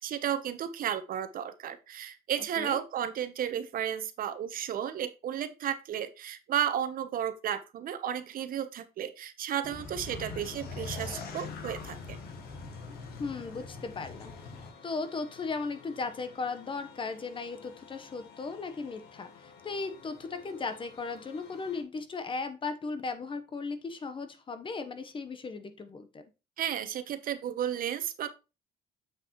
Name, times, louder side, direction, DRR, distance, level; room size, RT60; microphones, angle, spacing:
voice 1, 0.0-12.2 26.6-28.3, right 9 dB, 55° right, 1.0 m, -33 dB
sound 1, 9.6-14.7, left 4 dB, 65° left, 1.8 m, -42 dB
sound 2, 10.0-21.8, left 6 dB, 90° left, 1.8 m, -54 dB
voice 2, 13.2-14.3 14.8-26.2, left 4 dB, 30° left, 1.1 m, -36 dB
7.5 x 6.0 x 3.1 m
cardioid pair, 110°, 17 cm